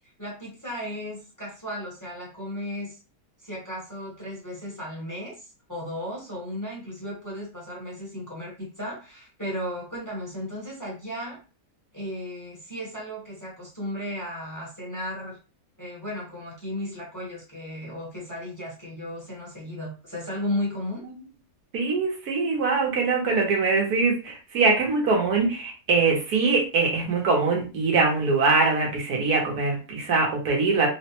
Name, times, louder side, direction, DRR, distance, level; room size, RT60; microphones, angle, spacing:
voice 1, 0.2-3.0 3.4-11.4 11.9-15.4 15.8-21.1, left 1 dB, 15° left, -5 dB, 1.0 m, -35 dB
voice 2, 21.7-30.9, right 4 dB, 85° right, 0 dB, 1.5 m, -23 dB
3.7 x 2.1 x 2.9 m, 0.33 s
omnidirectional pair, 1.6 m